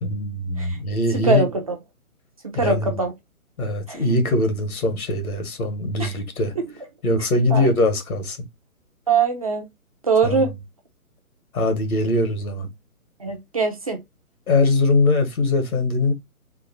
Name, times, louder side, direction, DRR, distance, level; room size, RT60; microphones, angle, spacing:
voice 1, 0.0-1.5 2.5-3.0 3.6-6.5 7.0-8.4 10.2-10.5 11.5-12.7 14.5-16.1, left 2 dB, 75° left, 1.8 m, -22 dB
voice 2, 1.1-1.5 2.4-3.1 3.9-4.0 6.0-6.1 7.5-7.7 9.1-9.7 10.0-10.5 13.2-14.0, right 4 dB, 25° right, 0.5 m, -22 dB
3.6 x 3.0 x 2.8 m
hypercardioid pair, 155°, 43 cm